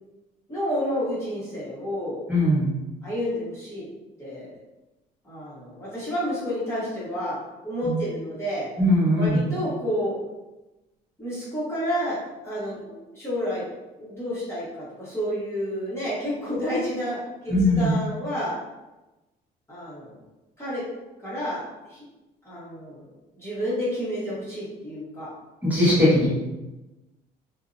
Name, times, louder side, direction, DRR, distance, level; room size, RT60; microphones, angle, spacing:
voice 1, 0.5-2.2 3.0-3.9 4.2-4.5 5.2-7.4 7.6-8.7 9.2-10.2 11.2-13.7 14.0-18.6 19.7-20.2 20.6-20.8 21.2-22.1 22.4-25.3, equal, 15° left, -10 dB, 1.0 m, -30 dB
voice 2, 2.3-2.7 7.8-7.9 8.8-9.5 17.5-18.0 25.6-26.3, left 1 dB, 10° right, -9 dB, 1.0 m, -20 dB
2.5 x 2.0 x 2.5 m, 1.0 s
cardioid pair, 110°, 17 cm